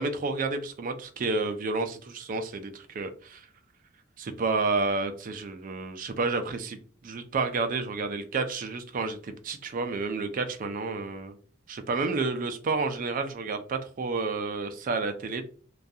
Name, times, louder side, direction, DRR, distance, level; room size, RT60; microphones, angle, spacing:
voice 1, 0.0-3.4 4.2-11.4 11.7-15.5, right 3 dB, 40° right, 7 dB, 0.3 m, -30 dB
2.3 x 2.2 x 2.6 m, 0.43 s
head